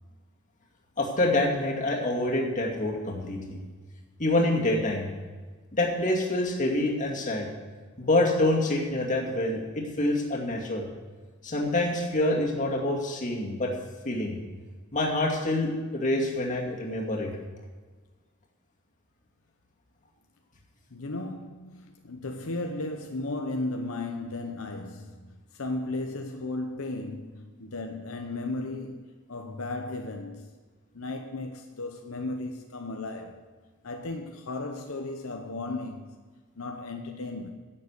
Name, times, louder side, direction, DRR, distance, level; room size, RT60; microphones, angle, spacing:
voice 1, 1.0-3.6 4.2-5.1 5.7-7.5 8.0-10.8 11.4-13.7 14.0-14.4 14.9-17.3, left 1 dB, 40° left, 2.3 m, -26 dB
voice 2, 20.9-30.5 30.9-33.4 33.8-36.1 36.6-37.5, left 2 dB, 80° left, 0.9 m, -35 dB
11.0 x 7.7 x 8.2 m
head